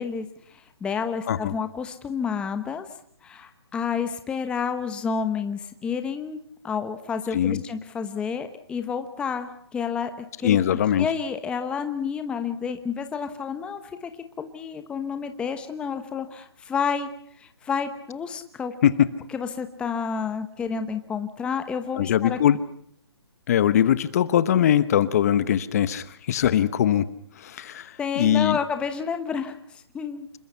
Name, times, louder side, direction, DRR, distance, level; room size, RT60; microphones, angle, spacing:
voice 1, 0.0-2.9 3.2-6.4 6.6-10.1 10.4-14.1 14.4-17.1 17.4-18.7 19.3-22.4 28.0-29.5 29.9-30.3, left 6 dB, 5° left, 8 dB, 1.0 m, -30 dB
voice 2, 10.4-11.1 18.8-19.1 22.0-22.6 23.5-27.0 27.6-27.9 28.2-28.6, left 10 dB, 35° left, 15 dB, 1.0 m, -21 dB
27.5 x 22.0 x 5.7 m, 0.66 s
hypercardioid pair, 150°, 14 cm